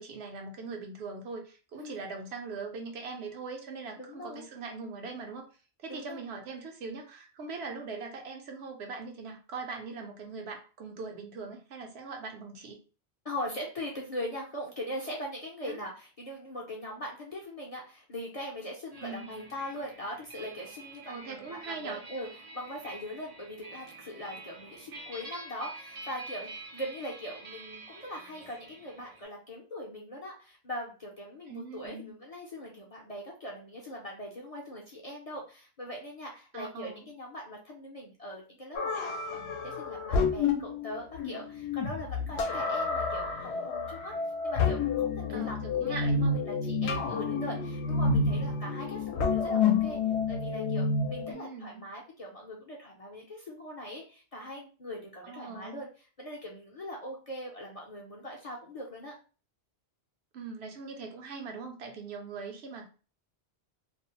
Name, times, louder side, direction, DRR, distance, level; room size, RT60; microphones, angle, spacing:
voice 1, 0.0-5.5 5.8-12.8 15.7-15.8 19.0-19.3 21.1-22.0 31.5-32.1 36.5-37.1 45.3-46.4 51.3-51.8 55.2-55.8 60.3-62.9, right 4 dB, 75° right, 3 dB, 0.9 m, -41 dB
voice 2, 1.7-2.1 4.0-4.5 5.9-6.2 13.2-22.3 22.5-44.1 44.4-50.0 50.3-55.9 56.2-59.1, left 1 dB, 45° left, -2 dB, 0.5 m, -41 dB
sound 1, 18.9-29.2, right 2 dB, 50° right, 0.5 m, -47 dB
sound 2, 38.8-51.3, left 4 dB, 75° left, 0.8 m, -29 dB
2.5 x 2.0 x 2.8 m, 0.35 s
omnidirectional pair, 1.1 m